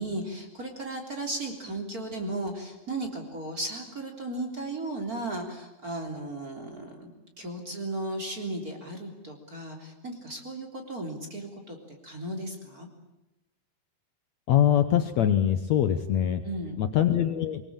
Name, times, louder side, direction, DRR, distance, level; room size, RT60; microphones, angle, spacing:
voice 1, 0.0-7.1 7.4-12.9 16.4-16.8, right 2 dB, 25° right, 2 dB, 3.5 m, -35 dB
voice 2, 14.5-16.4 16.8-17.6, left 10 dB, 80° left, 10 dB, 1.6 m, -23 dB
24.0 x 22.0 x 8.9 m, 0.98 s
omnidirectional pair, 4.6 m